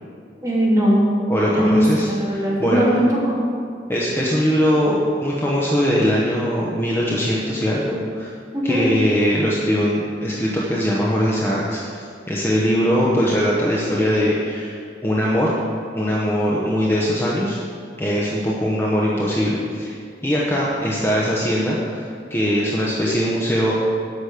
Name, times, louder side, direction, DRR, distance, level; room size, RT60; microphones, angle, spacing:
voice 1, 0.4-1.0 1.5-3.4 8.5-8.9, equal, 15° right, -7 dB, 2.8 m, -19 dB
voice 2, 1.3-2.8 3.9-8.3 8.6-15.5 15.9-17.6 18.0-20.0 20.2-23.7, equal, 15° left, -5 dB, 0.9 m, -21 dB
8.3 x 6.2 x 8.1 m, 2.3 s
head